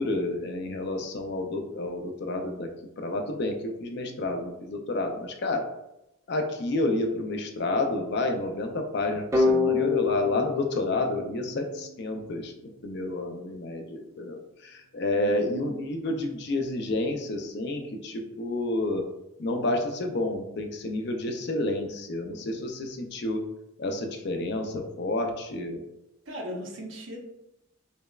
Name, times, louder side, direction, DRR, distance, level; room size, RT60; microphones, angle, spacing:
voice 1, 0.0-2.7 3.0-5.6 6.3-12.5 12.8-19.0 19.4-23.4 23.8-25.8, left 2 dB, 55° left, 4 dB, 0.4 m, -30 dB
sound 1, 9.3-12.1, left 4 dB, 15° right, 0.4 m, -27 dB
voice 2, 26.3-27.2, equal, 65° right, 0 dB, 0.8 m, -38 dB
5.1 x 2.1 x 2.3 m, 0.87 s
head